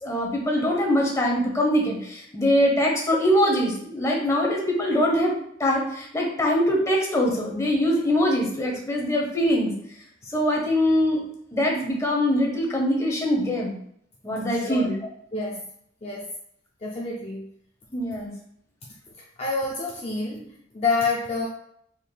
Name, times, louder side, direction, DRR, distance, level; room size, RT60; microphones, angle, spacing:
voice 1, 0.0-5.3 5.6-9.7 10.3-11.2 11.5-13.7 14.2-14.9 17.9-18.3, equal, 15° left, -1 dB, 0.8 m, -23 dB
voice 2, 14.5-14.9 15.3-15.6 16.0-16.3 16.8-17.5 19.2-21.5, left 3 dB, 35° left, -2 dB, 0.4 m, -28 dB
4.3 x 3.4 x 2.2 m, 0.70 s
head